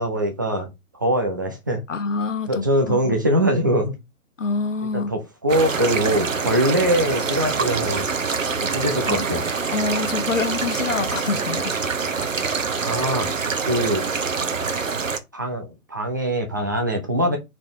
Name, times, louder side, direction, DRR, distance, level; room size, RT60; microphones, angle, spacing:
voice 1, 0.0-1.8 2.5-4.0 4.9-8.1 8.5-9.4 12.8-13.3 13.6-14.0 15.3-17.4, right 1 dB, 15° right, 0.7 m, -23 dB
voice 2, 1.9-3.2 4.4-5.1 9.0-9.3 9.7-12.0, left 4 dB, 60° left, 0.7 m, -26 dB
sound 1, 5.5-15.2, right 5 dB, 60° right, 1.1 m, -25 dB
5.0 x 4.2 x 4.5 m
figure-of-eight pair, 140°, 43 cm